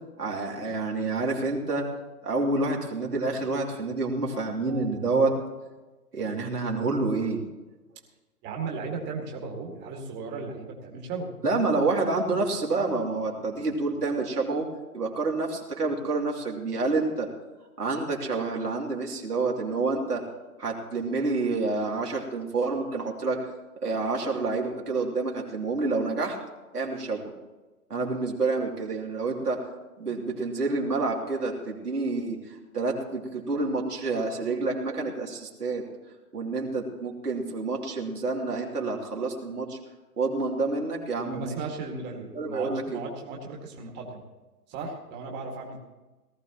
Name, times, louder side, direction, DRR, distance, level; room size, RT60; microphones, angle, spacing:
voice 1, 0.2-1.9 2.2-5.4 6.1-7.4 11.4-14.7 14.9-17.3 17.8-20.2 20.6-23.4 23.8-26.4 26.7-27.2 27.9-29.7 30.0-35.8 36.3-39.8 40.2-41.6 42.2-43.0, right 3 dB, 85° right, -2 dB, 3.1 m, -28 dB
voice 2, 8.4-11.3 41.3-44.2 44.7-45.8, right 4 dB, 25° right, 0 dB, 2.1 m, -36 dB
18.5 x 14.0 x 3.0 m, 1.2 s
figure-of-eight pair, 130°, 45 cm